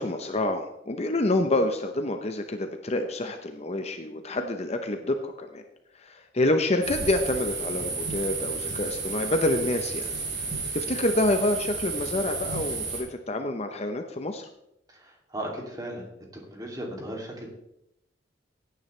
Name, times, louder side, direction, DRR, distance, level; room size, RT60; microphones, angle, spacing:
voice 1, 0.0-5.6 6.0-10.1 10.7-14.5, left 1 dB, 35° left, 6 dB, 0.8 m, -27 dB
sound 1, 6.8-13.0, right 4 dB, 65° right, 4.4 m, -32 dB
voice 2, 14.9-17.5, right 1 dB, 20° right, -1 dB, 2.7 m, -37 dB
16.5 x 9.5 x 3.3 m, 0.81 s
head